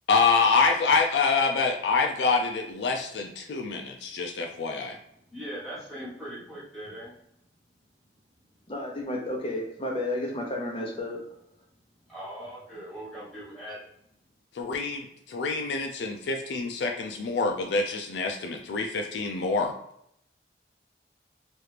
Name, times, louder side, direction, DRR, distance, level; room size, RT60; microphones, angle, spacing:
voice 1, 0.1-5.0 14.6-19.7, left 4 dB, 75° left, 3 dB, 0.4 m, -26 dB
voice 2, 5.3-7.1 12.1-13.8, equal, ahead, -10 dB, 1.0 m, -40 dB
voice 3, 8.7-11.3, left 1 dB, 30° left, -1 dB, 0.7 m, -32 dB
3.0 x 2.4 x 3.2 m, 0.74 s
head